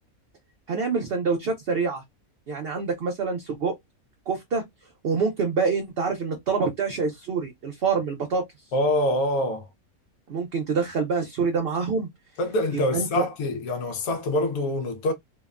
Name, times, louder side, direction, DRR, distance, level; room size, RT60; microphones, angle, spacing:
voice 1, 0.7-2.0 2.5-3.7 4.3-4.6 5.0-8.4 10.3-12.1 12.9-13.3, right 5 dB, 60° right, 0.7 m, -26 dB
voice 2, 8.7-9.7 12.4-15.1, left 1 dB, 80° left, 1.1 m, -25 dB
2.8 x 2.0 x 2.3 m
omnidirectional pair, 1.5 m